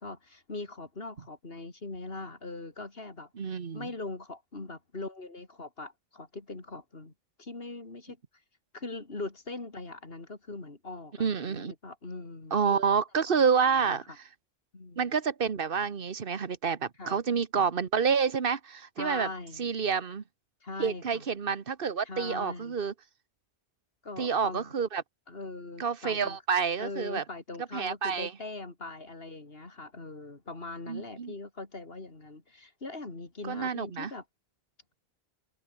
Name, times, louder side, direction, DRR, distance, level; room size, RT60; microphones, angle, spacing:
voice 1, 0.0-7.1 7.4-8.2 8.7-12.8 13.6-14.0 14.7-15.0 17.0-17.2 19.0-19.7 20.6-21.2 22.0-22.8 24.0-24.7 25.3-26.4 26.8-34.2, left 2 dB, 70° left, 3.4 m, -41 dB
voice 2, 3.4-3.9 11.2-11.7 12.5-14.2 15.0-19.3 19.6-20.2 20.8-22.9 24.2-25.0 25.8-27.2 27.7-28.3 30.9-31.3 33.4-34.1, right 6 dB, 60° right, 1.4 m, -28 dB
omnidirectional pair, 1.0 m